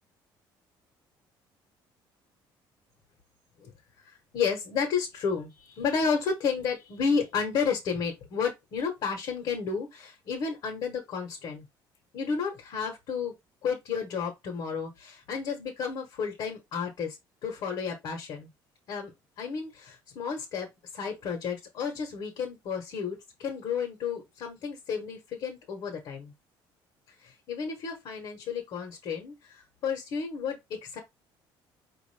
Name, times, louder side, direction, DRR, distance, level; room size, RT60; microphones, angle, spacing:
voice 1, 4.3-11.6 12.1-13.3 13.6-17.2 17.4-18.5 18.9-19.1 19.4-20.7 20.9-26.3 27.2-31.0, left 6 dB, 55° left, 1.3 m, -32 dB
5.0 x 2.6 x 3.3 m
cardioid pair, 160°, 9 cm